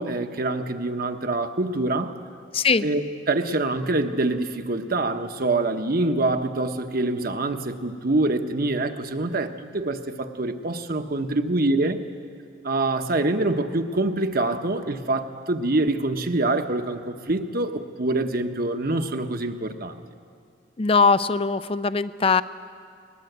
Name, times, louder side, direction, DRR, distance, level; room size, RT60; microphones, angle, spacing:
voice 1, 0.0-2.2 2.8-12.0 12.6-20.0, right 2 dB, 55° right, 7 dB, 1.1 m, -25 dB
voice 2, 2.5-2.9 20.8-22.4, left 4 dB, 30° left, 14 dB, 0.5 m, -20 dB
21.5 x 19.5 x 8.1 m, 2.3 s
head